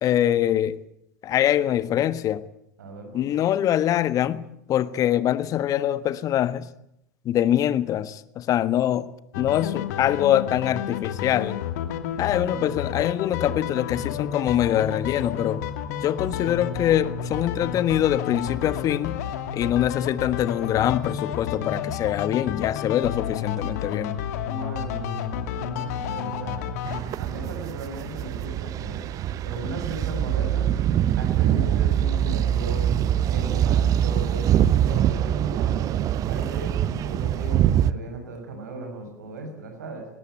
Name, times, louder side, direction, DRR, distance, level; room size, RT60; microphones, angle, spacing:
voice 1, 0.0-0.8 1.2-2.5 3.1-6.7 7.2-11.6 12.2-15.7 16.0-19.2 19.5-24.2, left 11 dB, 40° left, 1.4 m, -24 dB
voice 2, 2.8-3.3 12.4-13.0 24.4-26.7 27.1-29.0 29.4-30.7 31.2-32.9 33.3-35.8 36.2-40.1, right 2 dB, 75° right, 6.5 m, -37 dB
sound 1, 9.3-27.0, left 8 dB, 65° left, 2.6 m, -31 dB
sound 2, 23.3-28.1, right 1 dB, 5° right, 6.2 m, -53 dB
sound 3, 26.9-37.9, right 10 dB, 40° right, 1.0 m, -23 dB
20.5 x 19.0 x 9.3 m
hypercardioid pair, 90°, 9 cm